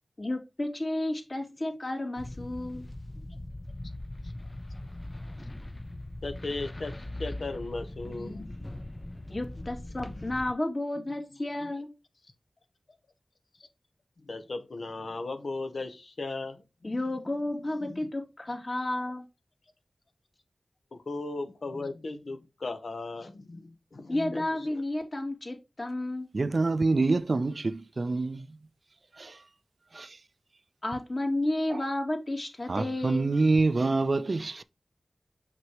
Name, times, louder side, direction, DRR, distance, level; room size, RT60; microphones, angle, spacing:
voice 1, 0.2-2.9 9.3-11.9 16.8-19.3 24.1-26.3 30.8-33.3, left 1 dB, 45° left, 2.3 m, -32 dB
sound 1, 2.2-10.5, left 1 dB, 30° left, 0.5 m, -40 dB
voice 2, 6.2-6.9 7.2-8.7 10.1-10.2 14.3-16.6 17.8-18.0 20.9-24.5, left 3 dB, 80° left, 0.9 m, -36 dB
voice 3, 26.3-28.6 29.1-29.4 29.9-30.2 31.7-31.8 32.7-34.6, right 3 dB, 60° right, 0.4 m, -26 dB
6.0 x 6.0 x 3.0 m
cardioid pair, 45°, 0 cm